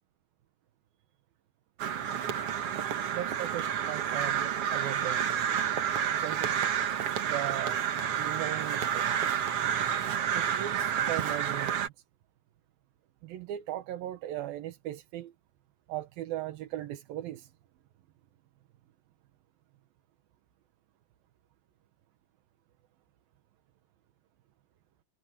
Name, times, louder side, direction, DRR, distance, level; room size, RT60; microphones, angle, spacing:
Crow, 1.8-11.9, right 9 dB, 55° right, 1.8 m, -30 dB
voice 1, 2.3-2.8 3.1-5.5 6.1-6.6 7.2-7.8 8.2-9.3 10.3-11.9 13.2-15.3 15.9-17.5, right 13 dB, 80° right, 3.0 m, -38 dB
omnidirectional pair, 4.1 m